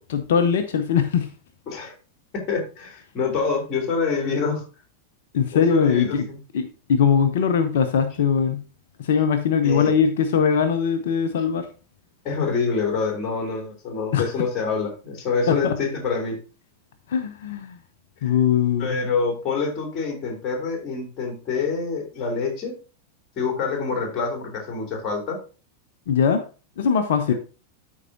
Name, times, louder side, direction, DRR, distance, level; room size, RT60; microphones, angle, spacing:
voice 1, 0.1-1.3 5.3-6.2 6.5-8.6 9.0-11.7 14.1-14.2 15.5-15.7 17.1-17.8 18.2-19.0 26.1-26.4 26.8-27.3, left 7 dB, 60° left, 9 dB, 0.8 m, -21 dB
voice 2, 2.3-4.6 5.5-6.4 9.6-9.9 12.2-16.4 18.2-18.4 18.8-22.7 23.4-25.4, left 5 dB, 35° left, 2 dB, 3.0 m, -26 dB
13.0 x 4.7 x 2.7 m, 0.35 s
figure-of-eight pair, 90°, 0 cm